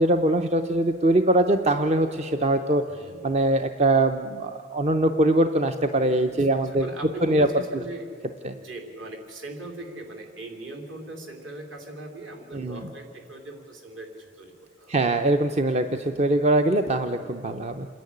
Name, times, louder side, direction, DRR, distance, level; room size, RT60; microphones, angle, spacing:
voice 1, 0.0-2.8 3.2-6.9 7.2-7.5 7.7-7.8 8.4-8.6 12.5-12.9 14.9-17.9, right 1 dB, 30° right, 7 dB, 0.6 m, -22 dB
voice 2, 2.9-3.3 6.3-8.2 8.5-15.0, right 2 dB, 60° right, 3 dB, 3.2 m, -40 dB
27.0 x 10.5 x 9.8 m, 2.4 s
head